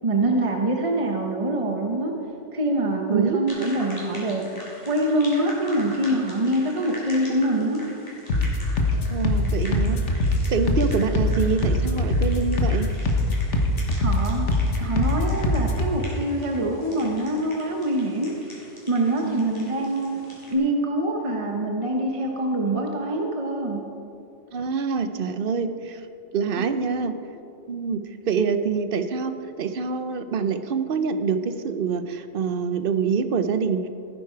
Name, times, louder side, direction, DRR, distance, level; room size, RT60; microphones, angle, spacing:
voice 1, 0.0-2.2 2.5-4.5 4.9-7.9 14.0-14.5 14.8-18.4 18.9-20.2 20.5-23.9 26.6-26.8, right 1 dB, 30° right, 1 dB, 1.0 m, -25 dB
voice 2, 3.1-3.4 9.1-10.0 10.5-12.9 19.2-19.6 24.5-26.0 26.3-27.2 27.7-33.9, right 5 dB, 55° right, 10 dB, 0.9 m, -25 dB
sound 1, 3.5-20.6, equal, 15° left, 3.2 m, -43 dB
sound 2, 8.3-15.9, left 2 dB, 75° left, 1.5 m, -23 dB
16.5 x 9.6 x 4.6 m, 2.6 s
omnidirectional pair, 1.2 m